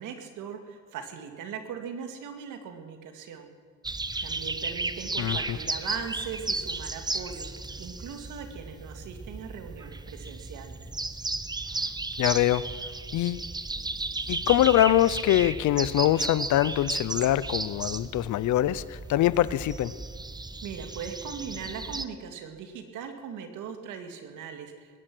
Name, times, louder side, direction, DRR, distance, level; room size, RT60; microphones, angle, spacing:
voice 1, 0.0-3.5 4.2-10.8 20.6-25.0, right 7 dB, 85° right, 6 dB, 2.1 m, -39 dB
sound 1, 3.8-22.0, right 3 dB, 15° right, 0.8 m, -34 dB
voice 2, 5.2-5.6 12.2-12.6 13.1-13.5 14.3-19.9, left 13 dB, 75° left, 18 dB, 0.7 m, -24 dB
21.0 x 11.0 x 6.1 m, 2.1 s
cardioid pair, 90°, 30 cm